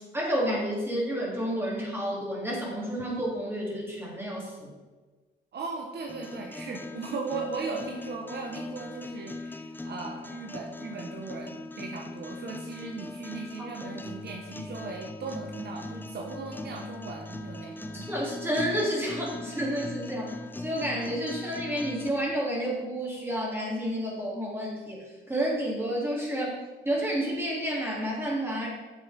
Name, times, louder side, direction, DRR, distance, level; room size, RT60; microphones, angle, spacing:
voice 1, 0.1-4.7 17.9-26.5 26.8-28.7, equal, 10° right, -4 dB, 3.1 m, -30 dB
voice 2, 5.5-18.1, right 4 dB, 55° right, 1 dB, 1.2 m, -38 dB
sound 1, 6.1-22.1, left 2 dB, 10° left, 0.7 m, -40 dB
8.1 x 6.8 x 5.2 m, 1.3 s
cardioid pair, 90°, 20 cm